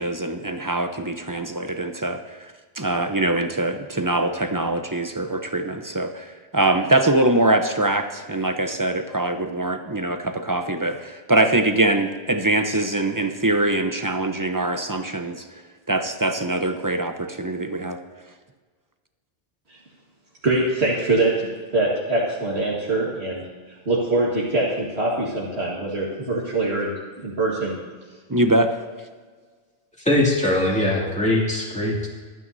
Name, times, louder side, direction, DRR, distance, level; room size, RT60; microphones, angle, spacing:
voice 1, 0.0-15.6 15.9-18.0 28.3-28.8, right 2 dB, 20° right, 6 dB, 0.7 m, -23 dB
voice 2, 20.4-23.4 23.9-27.8, right 2 dB, 75° right, -5 dB, 2.0 m, -23 dB
voice 3, 30.0-32.1, left 1 dB, 5° left, -4 dB, 2.5 m, -21 dB
24.0 x 9.3 x 2.7 m, 1.5 s
omnidirectional pair, 1.1 m